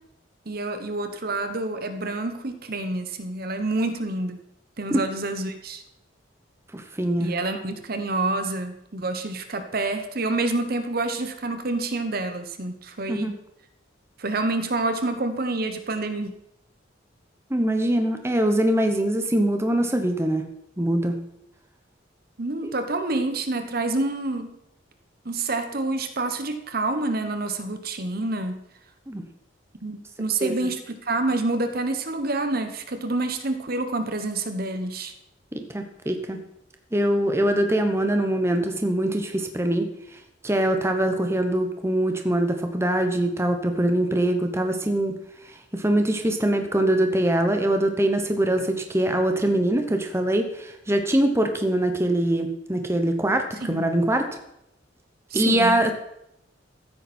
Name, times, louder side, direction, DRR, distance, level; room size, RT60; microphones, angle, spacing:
voice 1, 0.5-4.4 4.8-5.8 7.2-13.3 14.2-16.3 22.4-24.6 25.2-28.6 29.8-35.1 53.6-53.8 55.3-55.8, right 2 dB, 50° right, 8 dB, 1.1 m, -28 dB
voice 2, 6.7-7.3 13.1-13.3 17.5-20.4 20.8-21.2 22.6-22.7 29.1-29.2 30.4-30.7 35.5-36.4 36.9-39.9 40.4-45.2 45.7-54.2 55.3-55.9, right 1 dB, 15° right, 5 dB, 0.9 m, -23 dB
15.0 x 9.0 x 4.3 m, 0.81 s
head